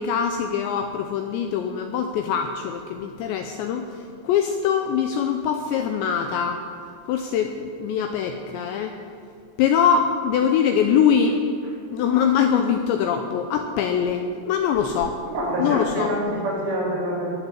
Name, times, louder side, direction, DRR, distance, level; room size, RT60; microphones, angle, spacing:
voice 1, 0.0-6.6 7.1-8.9 9.6-11.4 11.9-15.2 15.6-16.1, left 7 dB, 85° left, 5 dB, 2.6 m, -23 dB
voice 2, 15.2-17.3, right 1 dB, 85° right, -6 dB, 7.1 m, -26 dB
19.0 x 10.5 x 7.4 m, 2.4 s
omnidirectional pair, 6.0 m